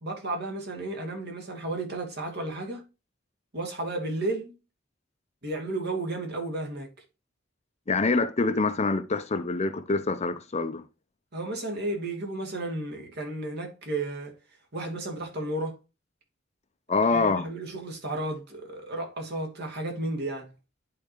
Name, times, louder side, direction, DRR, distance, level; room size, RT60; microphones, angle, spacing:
voice 1, 0.0-2.8 3.5-4.5 5.4-6.9 11.3-14.4 14.7-15.8 17.1-20.5, right 2 dB, 55° right, 2.4 m, -33 dB
voice 2, 7.9-10.9 16.9-17.5, left 3 dB, 35° left, 0.6 m, -25 dB
10.5 x 4.6 x 3.0 m
head